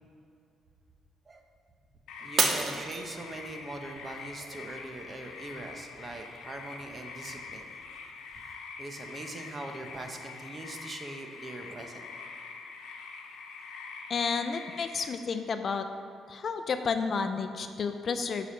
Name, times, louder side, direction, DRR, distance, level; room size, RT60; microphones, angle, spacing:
sound 1, 2.1-15.1, left 4 dB, 85° left, 0.9 m, -45 dB
voice 1, 2.2-7.7 8.8-12.0, right 2 dB, 35° right, 4 dB, 1.0 m, -42 dB
Shatter, 2.4-3.7 4.2-4.6 5.2-5.3, right 4 dB, 55° right, 1.0 m, -29 dB
voice 2, 14.1-15.9 16.3-18.5, left 5 dB, 50° left, 8 dB, 0.5 m, -31 dB
10.0 x 5.0 x 5.8 m, 2.5 s
cardioid pair, 90°, 0 cm